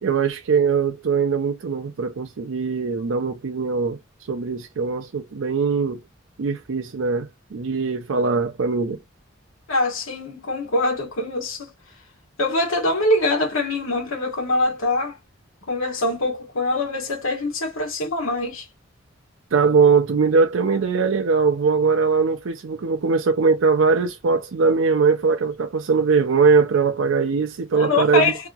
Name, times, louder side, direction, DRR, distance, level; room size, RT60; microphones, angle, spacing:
voice 1, 0.0-4.0 4.3-6.0 6.4-9.0 19.5-28.3, right 5 dB, 80° right, 0.5 m, -21 dB
voice 2, 9.7-11.7 12.4-15.2 15.7-18.6 27.7-28.4, left 2 dB, 90° left, 1.2 m, -23 dB
2.8 x 2.7 x 2.2 m
head